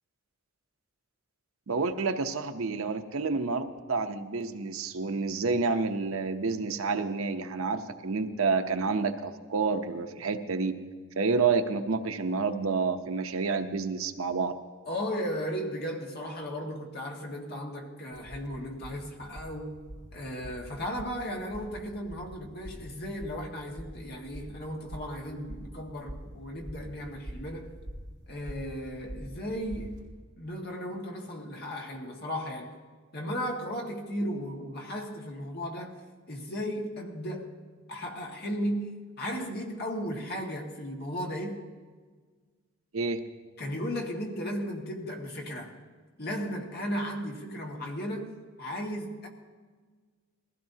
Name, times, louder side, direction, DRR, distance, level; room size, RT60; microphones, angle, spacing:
voice 1, 1.7-10.8 11.2-14.5 42.9-43.2, right 4 dB, 85° right, 0.8 m, -29 dB
voice 2, 14.9-19.8 20.1-27.7 28.3-32.7 33.1-37.5 37.9-41.6 43.6-45.7 46.2-48.3 48.6-49.3, equal, 50° left, 1.8 m, -35 dB
sound 1, 18.1-30.0, equal, 20° right, 4.2 m, -45 dB
20.5 x 15.5 x 2.8 m
head